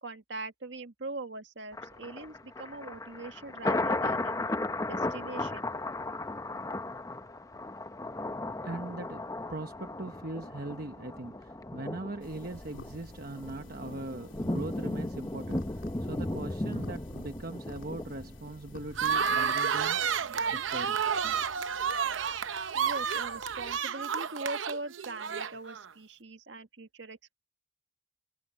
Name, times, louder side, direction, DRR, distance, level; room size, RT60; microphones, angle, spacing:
voice 1, 0.0-4.4 4.8-5.9 22.7-27.3, right 2 dB, 70° right, 1.8 m, -42 dB
Thunder, 1.7-18.8 19.2-19.3, left 2 dB, 20° left, 0.8 m, -36 dB
voice 2, 8.6-20.0 20.5-21.4, right 2 dB, 50° right, 1.1 m, -40 dB
sound 1, 12.2-23.8, left 1 dB, 85° left, 3.0 m, -51 dB
sound 2, 18.9-25.9, right 7 dB, 85° right, 0.7 m, -30 dB
head